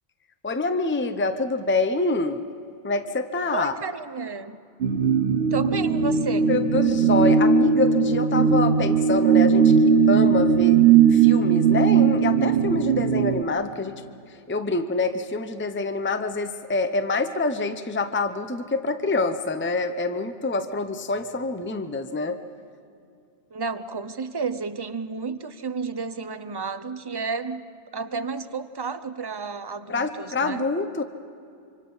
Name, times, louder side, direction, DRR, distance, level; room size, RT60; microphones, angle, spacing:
voice 1, 0.4-2.4 2.8-3.7 6.5-10.8 11.1-14.0 14.5-22.4 29.9-31.0, left 3 dB, 15° left, 8 dB, 0.7 m, -26 dB
voice 2, 3.5-4.6 5.5-6.5 23.5-27.6 27.9-30.7, right 4 dB, 25° right, 12 dB, 0.7 m, -31 dB
sound 1, 4.8-13.4, right 6 dB, 80° right, 1.2 m, -19 dB
26.0 x 25.0 x 5.6 m, 2.4 s
omnidirectional pair, 1.0 m